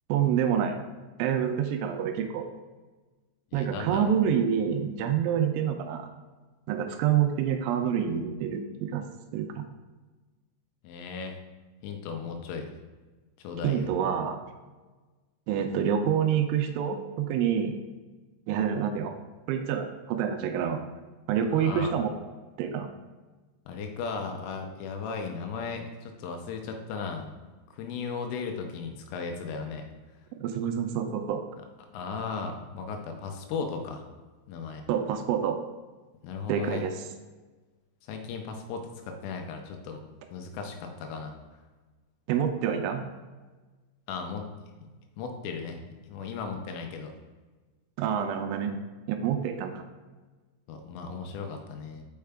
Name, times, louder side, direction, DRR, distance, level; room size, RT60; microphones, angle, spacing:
voice 1, 0.1-0.8 1.2-2.5 3.5-6.1 6.7-9.0 9.3-9.7 13.6-14.4 15.5-17.8 18.5-19.1 19.5-20.8 21.3-22.1 22.6-22.9 30.4-31.4 34.9-35.6 36.5-36.9 42.3-43.0 48.0-48.8 49.1-49.8, right 8 dB, 85° right, 6 dB, 3.0 m, -27 dB
voice 2, 3.5-4.2 10.8-11.4 11.8-12.7 13.4-13.9 21.5-22.0 23.7-27.3 27.7-29.9 31.9-34.0 34.5-34.8 36.2-36.8 38.1-40.0 40.3-41.3 44.1-44.5 45.2-45.8 46.1-47.1 50.7-52.0, left 5 dB, 80° left, 4 dB, 3.3 m, -36 dB
6.6 x 5.6 x 3.5 m, 1.3 s
omnidirectional pair, 5.7 m